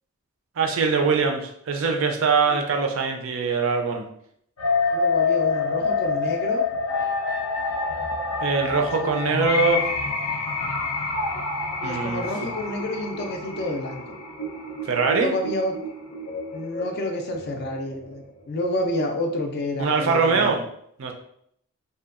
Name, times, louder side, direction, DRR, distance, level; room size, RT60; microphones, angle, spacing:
voice 1, 0.6-4.0 8.4-9.9 11.8-12.2 14.9-15.3 19.8-20.6 21.0-21.1, right 4 dB, 60° right, 4 dB, 0.4 m, -22 dB
sound 1, 4.6-18.6, left 4 dB, 90° left, 0.6 m, -27 dB
voice 2, 4.9-6.6 8.7-9.3 11.8-14.2 15.1-15.8 16.5-20.7, left 1 dB, 45° left, 4 dB, 0.3 m, -29 dB
2.7 x 2.2 x 2.4 m, 0.71 s
head